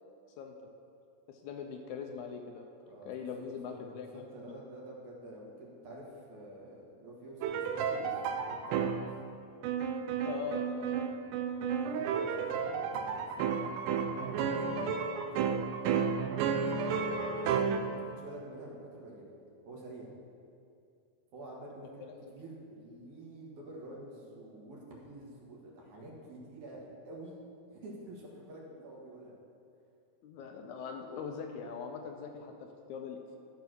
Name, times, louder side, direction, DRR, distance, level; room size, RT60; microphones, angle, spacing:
voice 1, 1.3-2.7 3.1-4.2 10.3-11.1 22.1-22.3 30.2-33.4, left 6 dB, 75° left, 3 dB, 1.9 m, -41 dB
voice 2, 3.4-9.0 11.7-13.7 14.2-15.7 16.5-19.3 19.7-20.1 21.3-27.4 27.7-29.3, right 1 dB, 70° right, -3 dB, 2.8 m, -48 dB
sound 1, 7.4-9.1 9.6-17.8, right 6 dB, 90° right, 2.2 m, -32 dB
12.5 x 4.7 x 6.1 m, 2.4 s
omnidirectional pair, 3.7 m